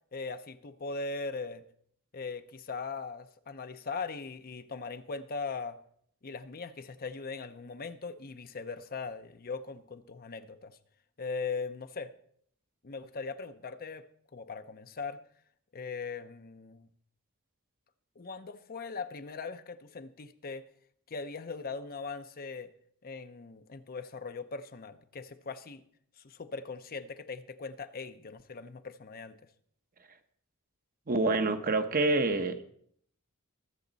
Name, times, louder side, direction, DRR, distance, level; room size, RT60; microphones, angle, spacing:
voice 1, 0.1-1.6 2.1-5.8 6.2-10.7 11.2-12.1 12.8-14.1 14.3-15.2 15.7-16.9 18.2-20.6 21.1-22.7 23.0-25.8 26.2-29.4, left 4 dB, 45° left, 10 dB, 0.7 m, -40 dB
voice 2, 31.1-32.6, right 2 dB, 40° right, 8 dB, 0.9 m, -27 dB
21.5 x 7.2 x 4.0 m, 0.64 s
head